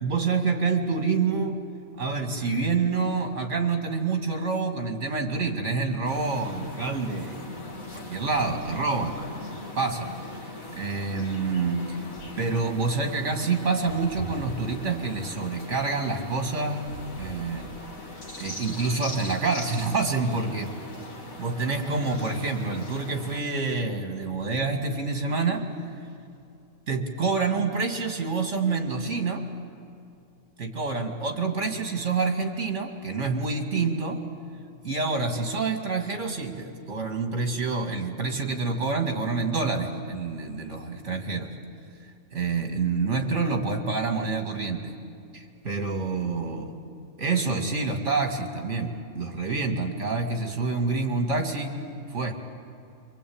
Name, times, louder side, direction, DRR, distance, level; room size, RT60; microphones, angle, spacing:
voice 1, 0.0-1.6 2.0-7.5 7.9-9.2 9.8-10.1 10.7-12.0 12.4-16.9 17.2-17.7 18.4-20.7 21.4-25.7 26.9-29.5 30.6-34.2 34.8-41.5 42.3-44.9 45.3-46.7 47.2-51.7 52.1-52.3, right 4 dB, 55° right, 4 dB, 2.7 m, -27 dB
sound 1, 6.1-23.4, left 2 dB, 70° left, 3.1 m, -40 dB
28.0 x 24.5 x 8.8 m, 2.4 s
omnidirectional pair, 1.5 m